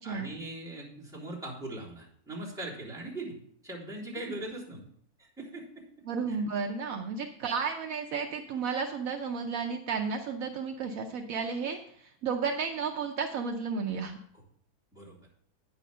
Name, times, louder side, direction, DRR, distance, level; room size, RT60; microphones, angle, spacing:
voice 1, 0.0-3.4 3.6-4.8 5.2-5.8 6.3-6.4 14.9-15.2, right 1 dB, ahead, -8 dB, 3.7 m, -40 dB
voice 2, 6.1-14.2, right 5 dB, 70° right, 4 dB, 1.1 m, -33 dB
9.1 x 6.4 x 5.3 m, 0.67 s
omnidirectional pair, 1.6 m